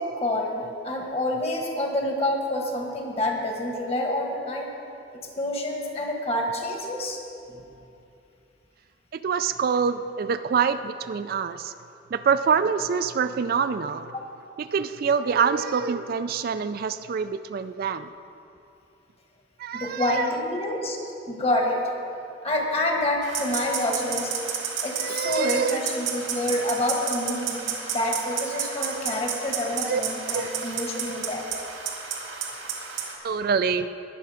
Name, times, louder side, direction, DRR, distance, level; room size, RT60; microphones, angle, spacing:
voice 1, 0.0-4.7 5.4-7.2 7.5-7.6 19.7-21.0 21.3-21.9 22.4-24.3 24.8-27.6 27.9-31.5, left 1 dB, 30° left, 1 dB, 1.5 m, -27 dB
voice 2, 9.1-11.7 12.1-14.1 14.6-18.1 19.6-20.3 25.0-25.8 29.9-30.0 30.3-30.5 33.2-33.9, right 6 dB, 50° right, 11 dB, 0.3 m, -25 dB
sound 1, 23.2-33.2, right 6 dB, 90° right, 1.8 m, -32 dB
19.5 x 6.9 x 4.9 m, 2.7 s
head